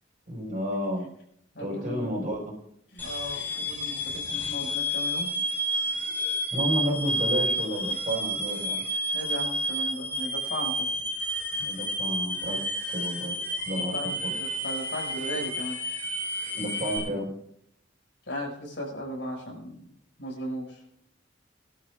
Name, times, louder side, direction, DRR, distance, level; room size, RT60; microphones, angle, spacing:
voice 1, 0.3-1.1 1.6-2.6 6.5-8.8 11.6-12.6 12.9-13.4 13.7-14.3 16.5-17.3, equal, 45° right, -2 dB, 5.7 m, -31 dB
voice 2, 1.5-2.2 2.9-5.3 9.1-10.9 13.9-15.8 18.3-20.8, equal, 80° left, -1 dB, 6.0 m, -36 dB
sound 1, 3.0-17.0, equal, 10° left, 4.3 m, -30 dB
23.5 x 12.0 x 2.5 m, 0.72 s
head